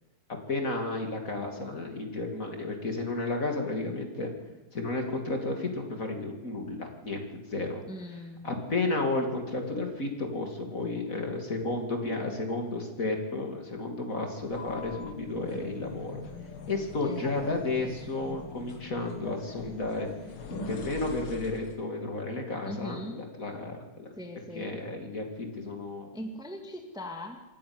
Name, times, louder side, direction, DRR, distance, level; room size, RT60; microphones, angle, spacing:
voice 1, 0.5-4.3 4.7-7.8 8.4-16.2 16.7-20.1 20.5-24.1 24.5-26.1, left 2 dB, 40° left, 3 dB, 3.0 m, -32 dB
voice 2, 7.9-8.5 17.0-17.9 22.6-23.2 24.2-24.8 26.1-27.4, left 1 dB, ahead, 3 dB, 1.9 m, -40 dB
sound 1, 14.4-21.9, left 3 dB, 80° left, 2.6 m, -42 dB
26.5 x 10.5 x 9.6 m, 1.0 s
omnidirectional pair, 2.3 m